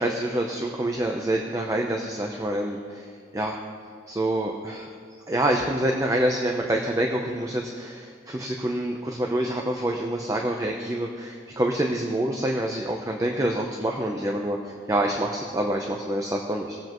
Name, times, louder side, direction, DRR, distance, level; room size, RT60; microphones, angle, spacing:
voice 1, 0.0-3.6 4.1-4.9 5.3-16.8, right 1 dB, 20° right, 1 dB, 0.7 m, -27 dB
20.0 x 7.7 x 3.1 m, 2.2 s
head